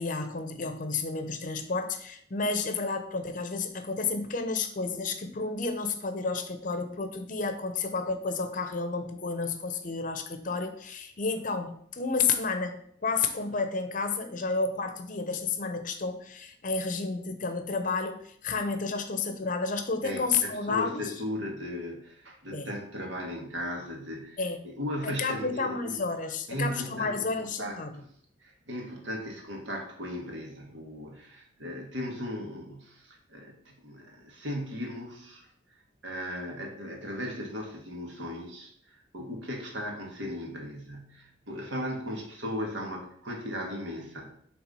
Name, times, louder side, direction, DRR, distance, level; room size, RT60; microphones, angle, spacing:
voice 1, 0.0-21.1 22.5-22.7 24.4-24.7 25.0-28.0, left 4 dB, 40° left, 7 dB, 0.7 m, -31 dB
voice 2, 20.0-26.0 26.5-28.1 28.4-35.5 36.0-38.7 39.1-44.3, equal, 70° right, 0 dB, 1.7 m, -37 dB
6.0 x 3.5 x 5.3 m, 0.63 s
head